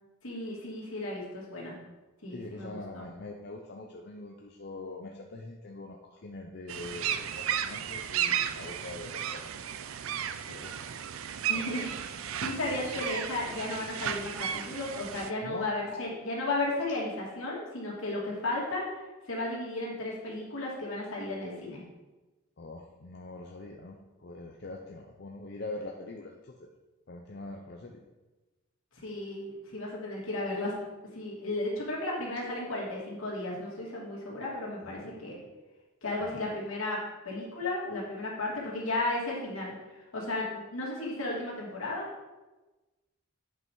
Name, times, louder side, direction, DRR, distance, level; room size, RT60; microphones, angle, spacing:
voice 1, 0.2-1.8 2.2-3.0 11.5-18.8 19.3-21.8 29.0-30.7 31.1-35.4 36.0-37.0 37.2-39.7 40.1-42.1, left 2 dB, 75° left, -4 dB, 2.7 m, -34 dB
voice 2, 2.3-9.6 10.2-11.6 12.9-13.0 15.4-16.0 22.6-26.7 27.1-28.0 35.0-35.1 36.2-36.5, left 2 dB, 50° left, 1 dB, 0.6 m, -43 dB
sound 1, 6.7-15.3, right 9 dB, 80° right, 0.5 m, -34 dB
8.8 x 5.4 x 4.7 m, 1.1 s
head